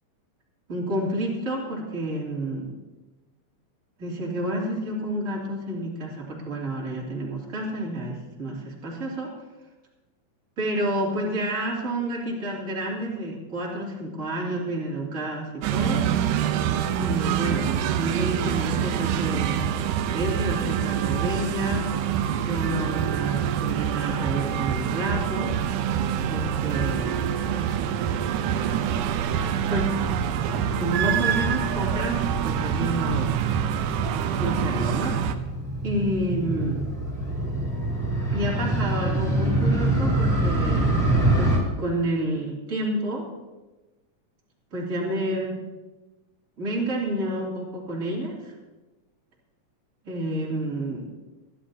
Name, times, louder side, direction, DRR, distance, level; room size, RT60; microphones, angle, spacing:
voice 1, 0.7-2.7 4.0-9.3 10.6-16.1 17.0-19.6 20.1-21.9 22.4-25.6 26.3-27.2 29.7-30.0 30.5-33.3 34.4-35.2 35.8-36.9 38.3-40.9 41.3-43.3 44.7-45.6 46.6-48.5 50.0-51.1, right 1 dB, 25° right, -4 dB, 2.9 m, -29 dB
sound 1, 15.6-35.4, right 9 dB, 80° right, 2.1 m, -26 dB
Motorcycle, 30.0-41.6, right 2 dB, 5° right, 4.2 m, -26 dB
24.0 x 11.0 x 2.8 m, 1.1 s
omnidirectional pair, 3.8 m